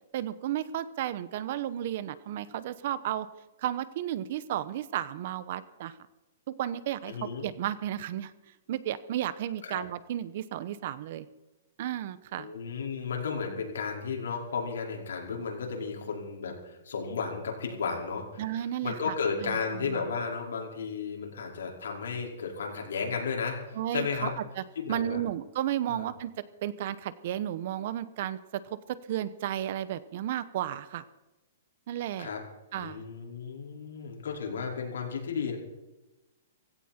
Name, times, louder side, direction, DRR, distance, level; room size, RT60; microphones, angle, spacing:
voice 1, 0.1-3.3 3.6-5.9 6.6-8.3 8.7-11.3 11.8-12.5 18.4-19.1 19.4-20.1 23.7-24.6 24.9-31.0 31.9-32.3 32.7-33.0, right 11 dB, 45° right, 16 dB, 0.9 m, -33 dB
voice 2, 7.1-7.4 9.6-9.8 12.4-18.4 18.8-24.3 24.7-25.2 25.9-26.1 32.2-32.4 32.8-35.6, left 5 dB, 90° left, 0 dB, 5.0 m, -34 dB
16.5 x 16.5 x 4.4 m, 1.0 s
hypercardioid pair, 165°, 0 cm